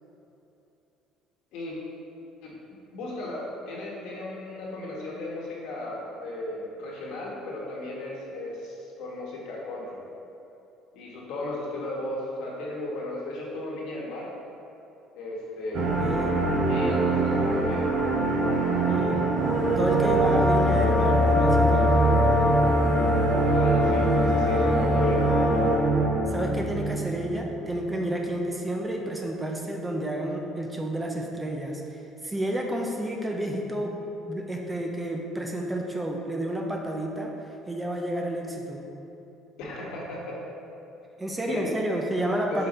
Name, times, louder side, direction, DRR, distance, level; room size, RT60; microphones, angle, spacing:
voice 1, 2.9-10.0 10.9-14.3 15.1-16.0 16.7-17.8 23.5-25.4 39.6-40.4 41.5-42.0 42.5-42.7, left 2 dB, 75° left, -3 dB, 1.4 m, -35 dB
sound 1, 15.7-27.6, right 1 dB, 50° right, 0.9 m, -24 dB
voice 2, 16.0-16.4 18.9-19.3 19.8-22.2 26.3-34.0 34.3-37.3 37.7-38.8 41.2-42.7, right 1 dB, 15° right, 1 dB, 0.6 m, -30 dB
sound 2, 19.3-25.9, equal, 30° right, 1.5 m, -26 dB
5.3 x 4.1 x 4.3 m, 2.9 s
cardioid pair, 115°, 0 cm